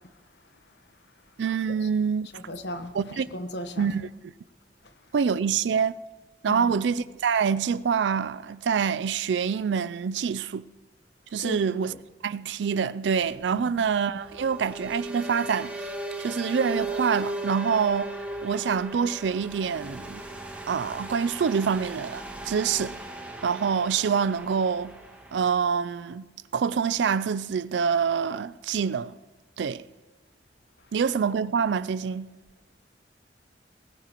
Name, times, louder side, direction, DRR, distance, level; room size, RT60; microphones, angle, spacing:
voice 1, 1.4-2.3 2.9-3.3 3.8-4.3 5.1-5.9 6.4-10.6 11.3-11.9 12.2-15.9 16.2-18.1 18.4-20.2 20.7-22.9 23.4-24.9 25.3-26.3 26.5-29.2 29.6-29.8 30.9-32.3, right 6 dB, 80° right, 0.4 m, -26 dB
voice 2, 2.3-3.9 6.5-6.9 11.4-12.0 13.5-13.7, equal, 70° left, 1.1 m, -37 dB
sound 1, 13.1-25.5, right 1 dB, 10° right, 1.8 m, -37 dB
19.5 x 17.0 x 3.0 m
head